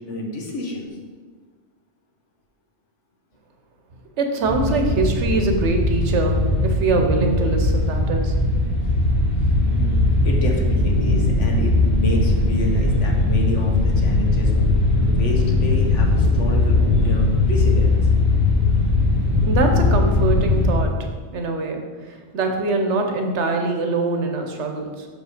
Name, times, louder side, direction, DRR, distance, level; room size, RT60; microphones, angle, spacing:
voice 1, 0.1-1.0 9.7-17.9, left 2 dB, 85° left, 0 dB, 1.5 m, -29 dB
voice 2, 4.2-8.3 8.9-9.0 19.4-25.1, right 3 dB, 75° right, 4 dB, 1.2 m, -23 dB
sound 1, 4.4-20.8, left 2 dB, 55° left, 2.5 m, -19 dB
6.2 x 5.5 x 4.9 m, 1.5 s
omnidirectional pair, 1.2 m